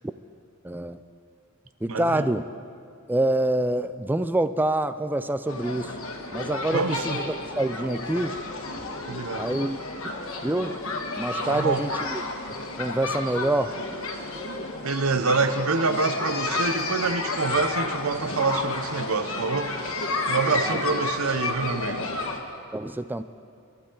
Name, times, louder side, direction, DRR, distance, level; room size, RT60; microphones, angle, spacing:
voice 1, 0.6-1.0 1.8-2.4 3.1-6.0 6.3-7.2 7.6-8.4 9.4-9.8 10.4-10.7 11.1-12.2 12.8-13.8 20.5-20.8 22.7-23.2, right 1 dB, 10° right, 12 dB, 0.4 m, -26 dB
voice 2, 1.9-2.3 6.7-7.2 9.1-9.5 11.4-11.9 14.8-20.0 20.3-22.1, right 4 dB, 65° right, 11 dB, 0.7 m, -26 dB
sound 1, 5.5-22.4, left 2 dB, 65° left, 1.6 m, -31 dB
27.5 x 12.5 x 3.9 m, 2.4 s
head